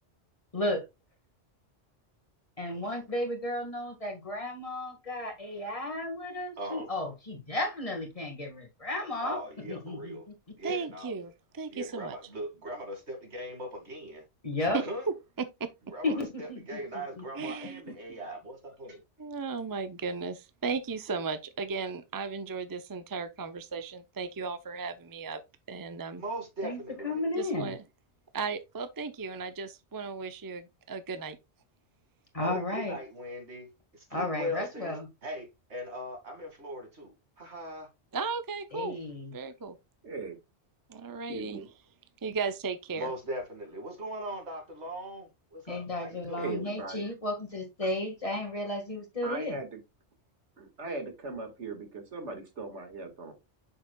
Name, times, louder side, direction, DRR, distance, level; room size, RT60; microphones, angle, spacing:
voice 1, 0.5-0.8 2.6-9.4 9.7-10.3 14.4-14.8 16.0-16.8 17.2-17.3 26.6-27.7 32.3-33.0 34.1-35.1 38.7-39.3 45.7-49.6, left 2 dB, 30° left, 1.8 m, -33 dB
voice 2, 6.6-6.9 9.2-10.3 10.6-11.1 11.7-14.2 14.8-15.1 15.9-19.0 21.1-21.2 26.2-27.2 32.4-33.7 33.9-37.9 42.9-46.6, equal, 75° right, 2.5 m, -39 dB
voice 3, 10.6-12.2 14.6-15.7 17.3-18.0 19.2-25.4 25.7-26.2 27.4-27.8 28.3-31.4 38.1-39.0 39.3-39.8 40.9-41.6 42.2-43.1, right 4 dB, 25° right, 0.5 m, -35 dB
voice 4, 40.0-40.4 41.3-41.7 46.4-47.1 49.2-49.8 50.6-53.3, right 3 dB, 90° right, 2.1 m, -38 dB
7.3 x 6.4 x 2.3 m
omnidirectional pair, 1.2 m